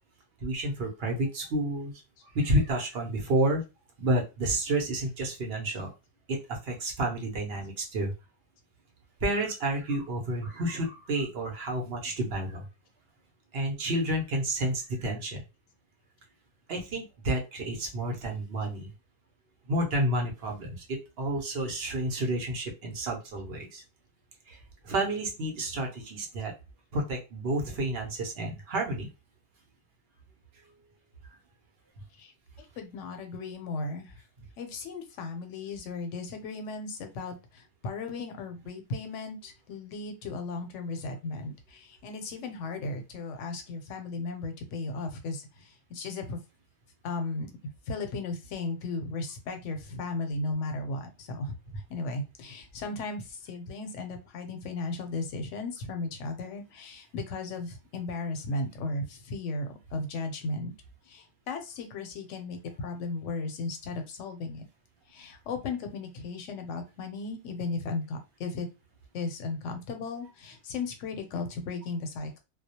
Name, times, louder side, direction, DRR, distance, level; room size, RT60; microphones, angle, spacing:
voice 1, 0.4-1.9 2.3-3.6 4.0-5.9 6.3-8.1 9.2-12.7 13.5-15.4 16.7-18.9 19.7-23.8 24.5-24.6 24.8-26.5 26.9-29.1 31.2-31.3, right 1 dB, 60° right, 2 dB, 0.8 m, -30 dB
voice 2, 32.6-34.2 34.6-46.4 47.0-47.5 47.9-60.7 61.1-64.6 65.1-68.7 69.1-72.4, left 3 dB, 85° left, 6 dB, 0.9 m, -36 dB
2.3 x 2.0 x 2.7 m, 0.27 s
omnidirectional pair, 1.2 m